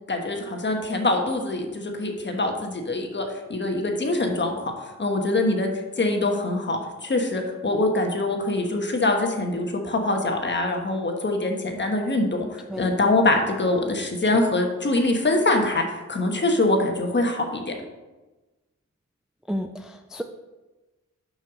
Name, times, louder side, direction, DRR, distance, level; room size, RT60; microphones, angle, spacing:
voice 1, 0.1-3.2 3.5-4.7 5.0-5.7 6.0-17.7, left 2 dB, 40° left, 2 dB, 1.3 m, -24 dB
voice 2, 19.5-20.2, equal, ahead, 5 dB, 0.4 m, -31 dB
5.9 x 5.6 x 6.3 m, 1.1 s
wide cardioid pair, 105°, 29 cm